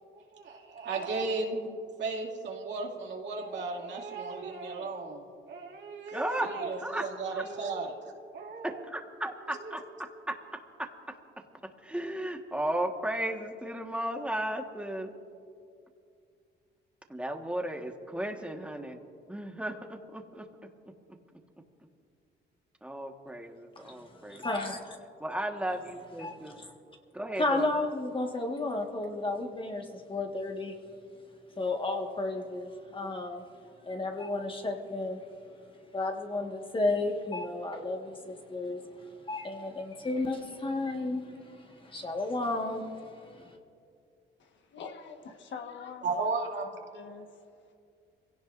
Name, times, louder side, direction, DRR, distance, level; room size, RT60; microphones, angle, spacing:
voice 1, 0.1-1.7 2.0-7.9 8.3-8.8 9.4-9.8 46.0-46.7, right 3 dB, 65° right, 2.6 m, -35 dB
voice 2, 6.1-7.0 7.3-7.4 8.6-9.8 10.3-10.9 11.6-15.1 17.1-19.0 19.3-20.4 20.9-21.0 22.8-24.4 25.2-26.6 27.1-27.8, right 1 dB, 5° right, 1.5 m, -35 dB
voice 3, 23.8-25.0 26.2-26.7 27.4-30.7 31.6-33.5 33.8-35.2 35.9-43.6, left 2 dB, 25° left, 1.7 m, -33 dB
voice 4, 44.4-46.3 46.9-47.7, left 6 dB, 70° left, 1.5 m, -45 dB
25.5 x 17.0 x 2.6 m
cardioid pair, 90°, 20 cm